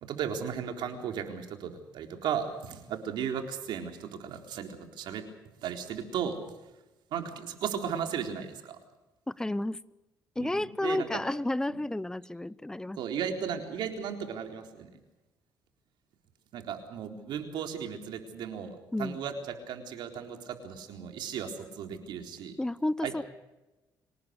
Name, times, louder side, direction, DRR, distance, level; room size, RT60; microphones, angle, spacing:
voice 1, 0.0-5.2 5.6-6.4 7.1-8.8 10.4-11.2 11.7-11.8 13.0-14.9 16.5-22.6 23.0-23.2, right 8 dB, 75° right, 5 dB, 4.0 m, -36 dB
voice 2, 9.3-9.8 10.4-13.0 18.9-19.2 22.6-23.2, left 1 dB, 10° left, 19 dB, 0.7 m, -31 dB
26.0 x 19.0 x 6.6 m, 1.0 s
cardioid pair, 110°, 8 cm